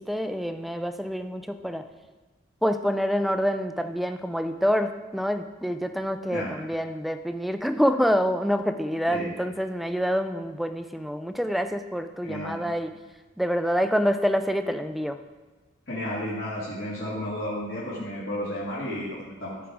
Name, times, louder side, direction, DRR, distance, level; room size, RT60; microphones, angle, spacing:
voice 1, 0.0-1.8 2.6-12.9 13.4-15.2, equal, ahead, 8 dB, 0.4 m, -26 dB
voice 2, 12.2-12.6 15.9-19.6, left 1 dB, 60° left, -7 dB, 2.0 m, -32 dB
14.0 x 4.9 x 4.6 m, 1.2 s
head